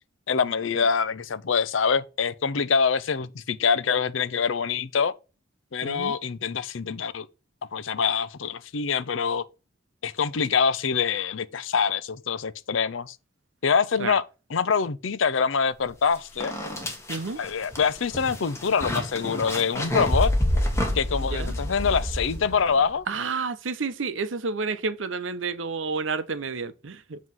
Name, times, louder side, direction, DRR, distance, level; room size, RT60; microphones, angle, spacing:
voice 1, 0.3-5.1 5.7-7.3 7.7-9.4 10.0-13.2 13.6-14.2 14.5-16.5 17.4-20.3 20.9-23.0, left 6 dB, 80° left, 0.6 m, -25 dB
voice 2, 5.8-6.1 14.0-14.2 17.1-17.4 21.2-21.6 23.1-27.2, right 4 dB, 80° right, 0.7 m, -30 dB
sound 1, 15.9-16.0 16.4-22.8, left 1 dB, 15° left, 1.4 m, -28 dB
7.5 x 3.1 x 5.6 m
head